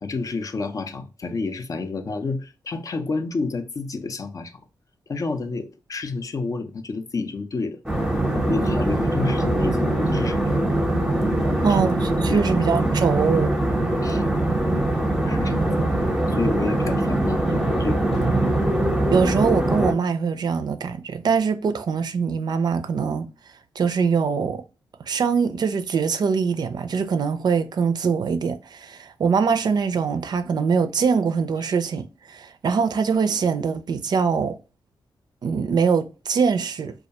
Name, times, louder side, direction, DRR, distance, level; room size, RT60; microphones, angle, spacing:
voice 1, 0.0-4.6 5.1-7.8 8.3-10.6 11.4-11.9 12.3-12.6 14.0-14.2 15.3-15.7 16.3-18.1, left 3 dB, 45° left, 0.4 m, -29 dB
sound 1, 7.9-19.9, right 1 dB, 5° right, 0.7 m, -22 dB
voice 2, 11.6-13.5 19.1-23.3 23.8-24.6 25.1-34.6 35.4-36.9, right 5 dB, 55° right, 0.4 m, -23 dB
2.3 x 2.1 x 2.7 m
cardioid pair, 60°, 8 cm